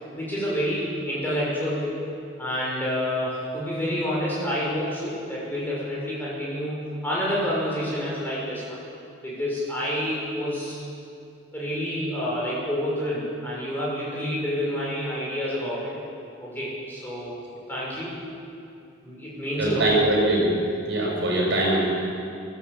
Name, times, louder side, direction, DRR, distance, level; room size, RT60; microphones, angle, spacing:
voice 1, 0.2-2.0 2.4-8.8 9.2-10.8 11.5-16.0 16.4-17.3 17.7-18.1 19.0-19.9, equal, 10° left, -7 dB, 6.3 m, -28 dB
voice 2, 19.6-20.5 20.9-21.9, right 1 dB, 60° right, -2 dB, 6.1 m, -22 dB
23.5 x 13.5 x 8.3 m, 2.6 s
head